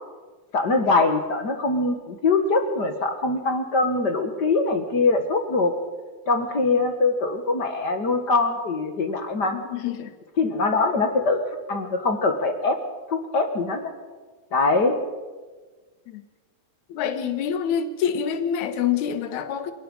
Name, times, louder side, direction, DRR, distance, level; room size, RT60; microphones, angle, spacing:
voice 1, 0.5-5.7 6.3-9.6 10.4-11.4 11.7-12.8 13.1-13.9 14.5-15.0, left 3 dB, 40° left, 1.9 m, -23 dB
voice 2, 9.5-10.1 16.1-16.2 16.9-19.7, left 8 dB, 70° left, 2.7 m, -26 dB
27.5 x 18.5 x 5.5 m
omnidirectional pair, 3.6 m